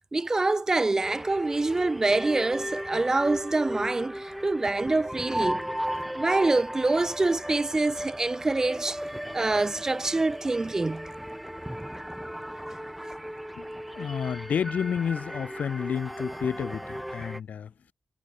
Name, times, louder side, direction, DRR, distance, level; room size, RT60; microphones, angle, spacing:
voice 1, 0.1-5.7 6.1-9.0 9.3-11.1, right 2 dB, 20° right, 0.4 m, -26 dB
sound 1, 1.0-17.4, equal, 5° right, 0.9 m, -36 dB
voice 2, 13.6-17.7, left 7 dB, 80° left, 1.1 m, -31 dB
wide cardioid pair, 150°, 3 cm